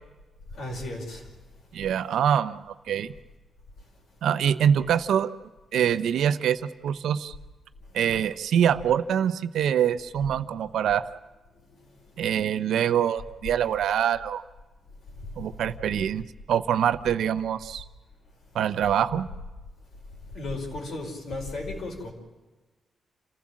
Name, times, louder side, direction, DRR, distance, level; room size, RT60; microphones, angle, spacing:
voice 1, 0.5-1.2 20.3-22.1, left 2 dB, 60° left, 5.3 m, -34 dB
voice 2, 1.7-3.1 4.2-5.3 5.7-7.3 7.9-11.1 12.2-14.4 15.4-17.8 18.5-19.3, right 9 dB, 85° right, 0.8 m, -24 dB
28.5 x 15.5 x 7.5 m
wide cardioid pair, 145°, 0 cm